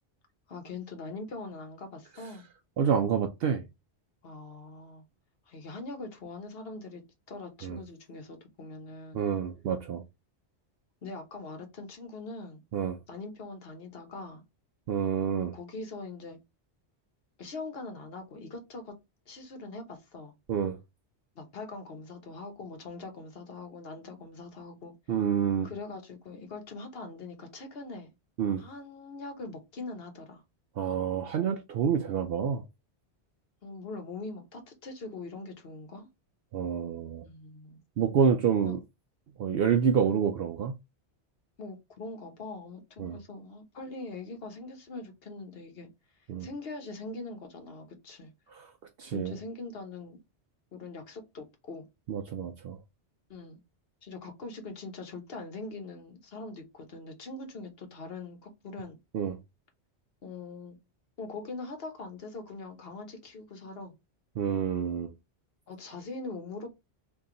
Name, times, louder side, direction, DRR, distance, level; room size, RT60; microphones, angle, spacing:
voice 1, 0.5-2.5 4.2-5.0 5.5-9.2 11.0-12.6 13.1-14.4 15.5-16.4 17.4-18.9 19.3-20.3 21.3-24.9 25.6-28.1 28.6-30.4 33.6-36.1 37.2-37.8 38.6-38.7 41.6-45.9 46.4-48.3 49.1-50.2 50.7-51.8 53.3-53.6 54.0-59.0 60.2-60.8 61.2-63.9 65.7-66.7, left 3 dB, 60° left, 1.2 m, -42 dB
voice 2, 2.8-3.6 7.6-7.8 9.1-10.0 12.7-13.0 14.9-15.5 20.5-20.8 25.1-25.7 28.4-28.6 30.8-32.6 36.5-37.3 38.0-38.8 39.4-40.7 43.0-43.2 46.3-46.5 48.5-48.7 49.0-49.4 52.1-52.8 59.1-59.4 64.4-65.1, right 7 dB, 65° right, 0.7 m, -28 dB
3.0 x 2.7 x 3.8 m
omnidirectional pair, 1.1 m